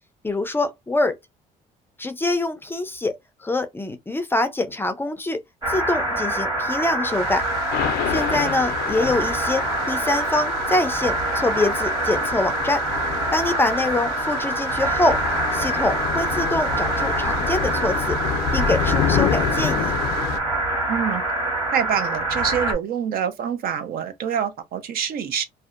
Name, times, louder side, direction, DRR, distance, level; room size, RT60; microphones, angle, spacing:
voice 1, 0.2-1.2 2.0-3.1 3.4-5.4 5.7-7.4 8.1-12.8 13.3-15.2 15.5-18.2 18.5-19.9, left 2 dB, 15° left, 0.4 m, -24 dB
sound 1, 5.6-22.7, right 2 dB, 25° right, 1.3 m, -25 dB
Thunder / Rain, 7.1-20.4, left 8 dB, 70° left, 0.4 m, -29 dB
voice 2, 20.9-21.2 21.7-25.4, right 8 dB, 60° right, 0.5 m, -26 dB
2.6 x 2.1 x 2.4 m
cardioid pair, 110°, 17 cm